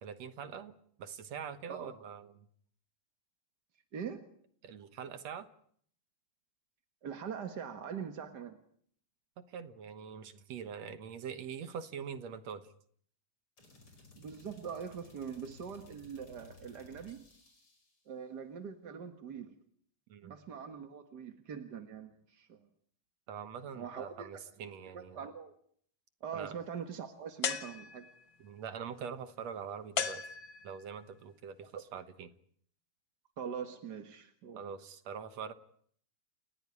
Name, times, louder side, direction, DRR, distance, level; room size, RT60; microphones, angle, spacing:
voice 1, 0.0-2.5 4.6-5.5 9.4-12.7 20.1-20.3 23.3-25.2 26.3-26.5 28.4-30.3 30.6-32.3 34.6-35.5, right 7 dB, 60° right, 11 dB, 2.1 m, -44 dB
voice 2, 3.9-4.3 7.0-8.6 14.1-17.2 18.1-19.6 20.2-22.7 23.7-24.3 24.9-25.5 26.2-28.1 33.4-34.6, right 7 dB, 45° right, 6 dB, 1.4 m, -43 dB
sound 1, 13.6-18.0, left 2 dB, 35° left, 6.3 m, -58 dB
sound 2, 27.4-28.3 30.0-30.9, left 7 dB, 55° left, 1.4 m, -36 dB
29.5 x 16.0 x 9.9 m, 0.63 s
omnidirectional pair, 3.9 m